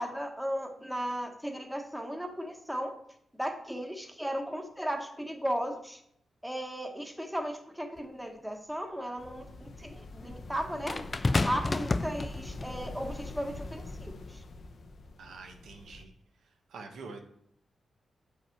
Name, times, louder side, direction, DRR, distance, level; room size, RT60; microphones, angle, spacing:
voice 1, 0.0-2.9 3.4-6.0 6.4-11.0 11.4-14.4, equal, ahead, 4 dB, 1.1 m, -36 dB
sound 1, 8.0-8.1 10.9-12.8 13.7-13.9, left 2 dB, 25° left, 0.3 m, -30 dB
sound 2, 9.2-16.0, left 2 dB, 50° left, 0.8 m, -44 dB
voice 2, 15.2-16.1 16.7-17.2, right 4 dB, 85° right, 4 dB, 1.1 m, -45 dB
7.6 x 5.0 x 4.5 m, 0.69 s
wide cardioid pair, 120°, 0 cm